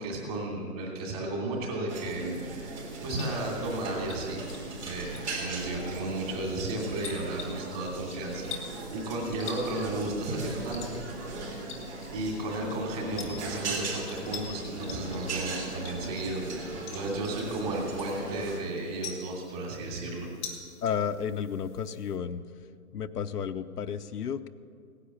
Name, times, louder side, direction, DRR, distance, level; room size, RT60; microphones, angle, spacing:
voice 1, 0.0-4.4 4.8-10.8 11.6-11.7 12.1-16.6 16.9-20.5, right 2 dB, 25° right, -2 dB, 2.9 m, -34 dB
sound 1, 1.9-18.6, right 2 dB, 45° right, 3.6 m, -38 dB
sound 2, 2.9-22.2, left 5 dB, 10° left, 0.9 m, -47 dB
voice 2, 20.8-22.4 22.9-24.5, left 7 dB, 75° left, 9 dB, 0.7 m, -32 dB
17.5 x 10.0 x 7.1 m, 2.3 s
hypercardioid pair, 165°, 47 cm